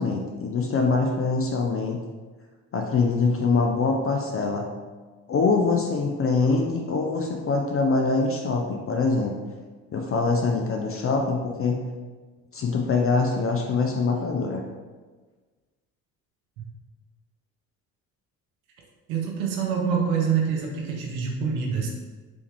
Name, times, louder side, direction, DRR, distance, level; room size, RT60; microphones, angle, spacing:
voice 1, 0.0-2.0 2.7-4.7 5.3-9.4 9.9-11.8 12.5-14.6, left 4 dB, 35° left, 2 dB, 0.5 m, -24 dB
voice 2, 19.1-21.9, right 6 dB, 85° right, 0 dB, 0.7 m, -26 dB
3.4 x 3.0 x 3.3 m, 1.4 s
hypercardioid pair, 60°, 42 cm